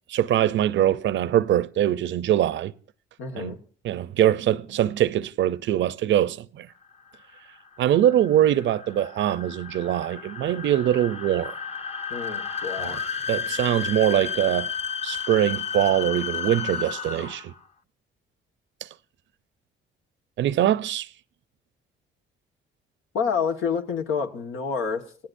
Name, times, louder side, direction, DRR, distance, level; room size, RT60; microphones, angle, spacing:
voice 1, 0.1-2.7 3.4-3.6 3.8-6.7 7.8-11.5 12.8-13.0 13.3-14.7 15.0-17.5 18.8-18.9 20.4-21.1, right 11 dB, 70° right, 0.6 m, -23 dB
voice 2, 3.2-3.6 12.1-13.0 23.1-25.0, left 6 dB, 90° left, 1.6 m, -28 dB
sound 1, 6.9-17.6, left 6 dB, 35° left, 0.9 m, -33 dB
29.0 x 17.0 x 2.6 m
cardioid pair, 90°, 20 cm